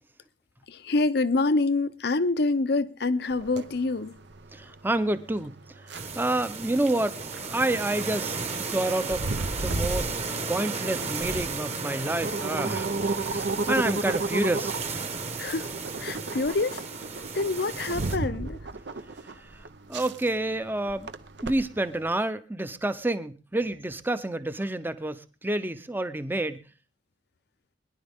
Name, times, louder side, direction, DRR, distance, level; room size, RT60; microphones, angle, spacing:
voice 1, 0.7-4.1 15.4-15.7 16.0-16.8 17.3-18.6, left 3 dB, 65° left, 0.7 m, -26 dB
sound 1, 3.3-22.1, right 3 dB, 70° right, 0.8 m, -34 dB
voice 2, 4.5-5.6 5.9-7.2 7.5-9.3 9.6-10.2 10.5-14.8 19.4-19.5 19.9-21.1 21.4-26.6, right 1 dB, 10° right, 0.7 m, -29 dB
sound 2, 5.9-18.2, right 4 dB, 35° right, 1.4 m, -34 dB
21.5 x 10.5 x 3.6 m
head